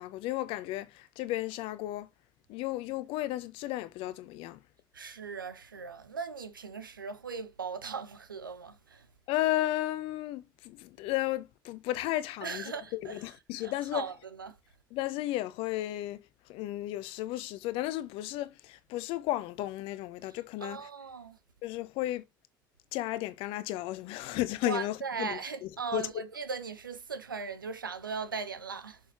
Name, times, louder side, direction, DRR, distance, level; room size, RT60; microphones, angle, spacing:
voice 1, 0.0-2.1 2.5-4.6 9.3-14.0 14.9-20.8 21.6-22.2 22.9-26.1, left 15 dB, 60° left, 0.8 m, -34 dB
voice 2, 4.9-9.1 12.4-13.2 13.5-14.6 20.6-21.4 24.7-29.0, right 5 dB, 85° right, 0.9 m, -38 dB
6.6 x 5.6 x 4.3 m
figure-of-eight pair, 60°, 11 cm